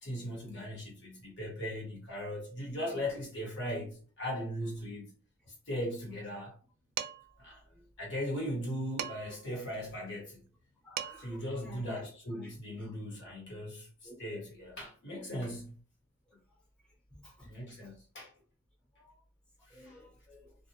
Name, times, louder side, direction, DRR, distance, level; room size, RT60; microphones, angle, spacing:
voice 1, 0.0-5.1 5.7-6.5 7.4-10.4 11.2-15.8 17.4-18.3 19.7-19.9, equal, 55° left, 1.1 m, -38 dB
Dishes pots and pans, 7.0-7.4 9.0-9.5 10.6-10.7 11.0-11.4, right 10 dB, 85° right, 0.3 m, -39 dB
voice 2, 10.8-12.0 12.4-12.5 12.8-12.9 14.0-14.4 17.1-17.9 18.9-19.2 19.7-20.6, left 1 dB, 5° left, 0.8 m, -53 dB
2.5 x 2.1 x 2.7 m
head